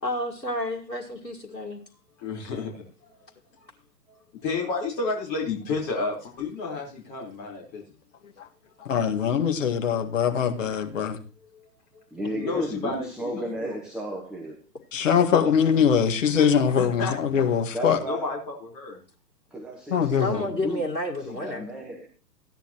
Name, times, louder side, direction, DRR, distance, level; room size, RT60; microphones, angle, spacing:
voice 1, 0.0-1.8 20.2-21.6, left 1 dB, 90° left, 2.2 m, -30 dB
voice 2, 2.2-2.8 3.6-3.7 4.4-7.8 11.5-13.8 15.2-15.5 16.8-17.1 17.8-19.0, left 4 dB, 30° left, 4.5 m, -32 dB
voice 3, 8.9-11.2 14.9-18.0 19.9-20.4, left 7 dB, 50° left, 2.0 m, -22 dB
voice 4, 12.1-14.6 17.7-18.3 19.5-20.8 21.2-22.1, right 1 dB, ahead, 1.3 m, -34 dB
15.5 x 10.5 x 3.0 m
figure-of-eight pair, 120°, 49 cm